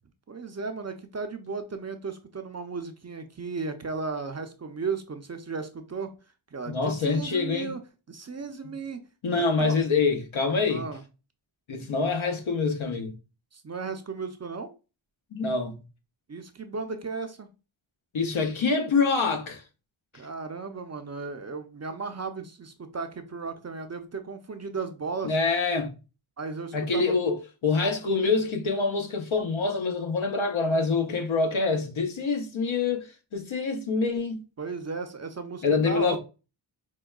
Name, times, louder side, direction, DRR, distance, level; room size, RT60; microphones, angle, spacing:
voice 1, 0.3-6.1 6.5-7.8 8.1-9.0 9.3-9.8 10.7-11.0 13.5-14.7 16.3-17.5 20.1-25.4 26.4-27.2 34.6-36.2, right 4 dB, 35° right, 0.5 m, -35 dB
voice 2, 6.7-7.7 8.6-8.7 9.2-10.9 11.7-13.1 15.3-15.8 18.1-19.6 25.2-26.0 26.7-34.4 35.6-36.2, left 4 dB, 80° left, 0.8 m, -26 dB
4.6 x 2.2 x 2.3 m
wide cardioid pair, 60°, 47 cm